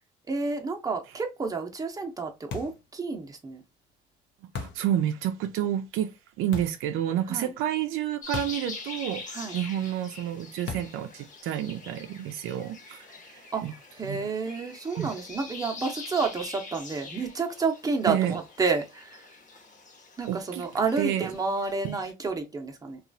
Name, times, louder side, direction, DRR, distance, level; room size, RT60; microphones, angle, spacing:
voice 1, 0.3-3.6 7.3-7.5 9.3-9.6 13.5-13.6 14.0-19.2 20.2-23.0, right 4 dB, 15° right, 0.7 m, -30 dB
sound 1, 2.5-2.9 4.5-4.9 6.5-6.9 8.3-8.7 9.0-9.1 10.7-11.1, left 5 dB, 60° left, 0.7 m, -37 dB
voice 2, 4.6-13.7 14.0-14.2 15.0-15.1 18.1-18.4 20.3-20.6 21.0-21.3 21.8-22.0, right 11 dB, 75° right, 0.4 m, -30 dB
sound 2, 8.2-22.1, left 3 dB, 35° left, 1.0 m, -44 dB
2.8 x 2.4 x 2.5 m
cardioid pair, 95°, 21 cm